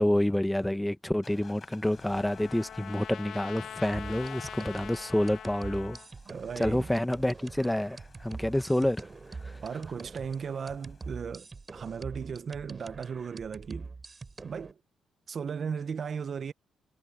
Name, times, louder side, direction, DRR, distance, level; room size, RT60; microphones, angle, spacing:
voice 1, 0.0-6.0 6.6-9.1 9.4-9.6, left 1 dB, 5° left, 1.2 m, -28 dB
sound 1, 1.2-11.5, left 5 dB, 40° left, 6.2 m, -55 dB
Trumpet, 1.4-6.1, left 10 dB, 75° left, 1.4 m, -44 dB
sound 2, 3.9-14.7, right 4 dB, 30° right, 3.4 m, -44 dB
voice 2, 6.3-6.9 9.6-11.5 11.7-13.9 14.4-14.8 15.3-16.5, right 6 dB, 45° right, 0.9 m, -36 dB
cardioid pair, 90°, 0 cm